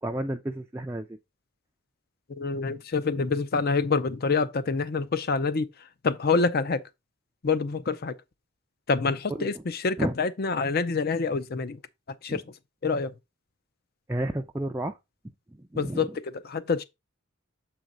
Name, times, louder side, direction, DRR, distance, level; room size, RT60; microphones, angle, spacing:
voice 1, 0.0-1.2 9.3-9.6 10.0-10.2 12.3-12.4 14.1-15.0 15.5-16.2, right 1 dB, 10° right, 0.4 m, -32 dB
voice 2, 2.4-5.7 6.0-6.8 7.4-8.1 8.9-11.8 12.2-12.4 12.8-13.1 15.8-16.1 16.5-16.8, left 4 dB, 45° left, 0.5 m, -26 dB
7.3 x 4.5 x 3.8 m
head